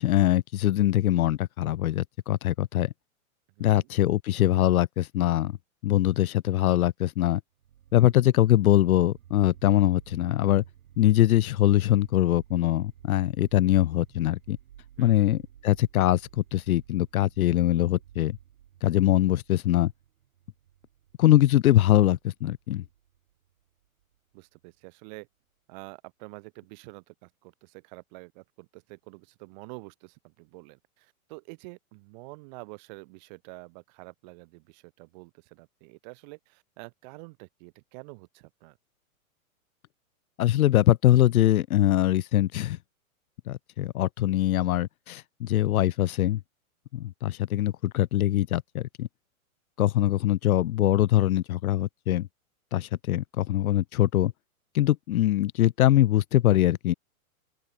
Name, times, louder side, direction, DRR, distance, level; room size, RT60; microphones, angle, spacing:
voice 1, 0.0-2.9 3.6-5.6 5.8-7.4 7.9-10.6 11.0-14.6 15.0-16.2 16.5-18.4 18.8-19.9 21.2-22.8 40.4-42.8 43.5-46.4 46.9-49.1 49.8-52.3 52.7-54.3 54.7-56.9, left 13 dB, 80° left, 0.7 m, -23 dB
voice 2, 3.6-3.9 15.0-15.3 24.3-25.3 25.7-38.8, right 28 dB, 30° right, 3.5 m, -47 dB
sound 1, 7.6-24.6, right 11 dB, 65° right, 3.1 m, -54 dB
open air
hypercardioid pair, 165°, 42 cm